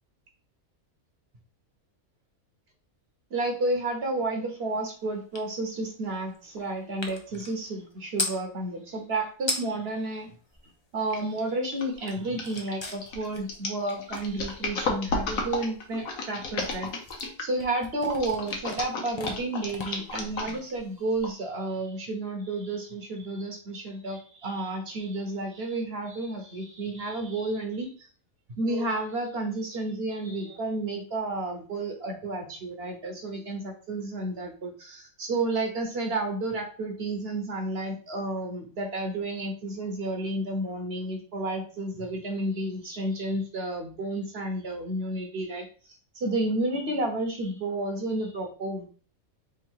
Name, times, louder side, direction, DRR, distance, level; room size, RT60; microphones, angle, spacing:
voice 1, 3.3-10.3 10.9-28.1 28.6-45.7 46.1-48.8, right 2 dB, 50° right, 3 dB, 1.0 m, -31 dB
sound 1, 5.3-5.5 5.8-8.4 9.1-9.2 9.4-9.9 10.3-11.4 11.7-21.0, left 2 dB, 40° left, 0.4 m, -38 dB
sound 2, 11.1-11.4 11.7-17.6 18.1-20.8 21.2-21.3, left 3 dB, 70° left, 1.3 m, -33 dB
3.7 x 2.6 x 4.5 m, 0.40 s
omnidirectional pair, 1.5 m